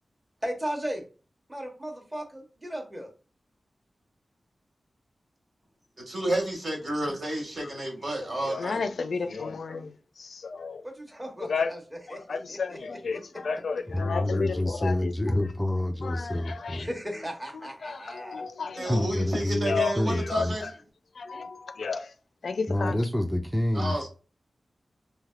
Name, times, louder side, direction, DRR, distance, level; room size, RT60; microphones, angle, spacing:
voice 1, 0.4-1.1 1.5-3.1 10.8-11.8 12.1-12.6 16.7-18.4, equal, 15° right, 1.0 m, -36 dB
voice 2, 6.0-8.8 18.8-20.7 23.7-24.1, right 1 dB, 60° right, 1.5 m, -30 dB
voice 3, 8.2-10.8 11.4-11.7 12.1-15.5 16.0-16.9 17.5-19.3 19.6-20.7 21.1-22.1 22.4-23.0, left 4 dB, 80° left, 0.4 m, -33 dB
voice 4, 13.9-16.9 18.9-20.6 22.7-24.1, left 1 dB, 5° left, 0.3 m, -28 dB
3.3 x 2.8 x 2.4 m
wide cardioid pair, 125°, 0 cm